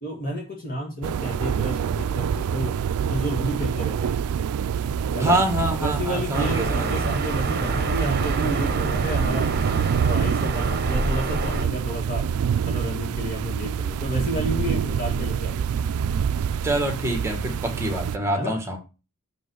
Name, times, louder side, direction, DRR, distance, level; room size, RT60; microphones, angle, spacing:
voice 1, 0.0-2.8 3.1-4.2 5.1-5.4 5.8-9.5 10.1-12.2 12.6-15.7 18.4-18.5, right 1 dB, 40° left, 1.7 m, -30 dB
sound 1, 1.0-18.2, right 7 dB, 80° right, 0.3 m, -26 dB
voice 2, 5.2-7.0 16.6-18.8, right 1 dB, 15° right, 1.6 m, -25 dB
sound 2, 6.3-11.7, right 3 dB, 45° right, 1.0 m, -27 dB
6.4 x 5.4 x 6.2 m
head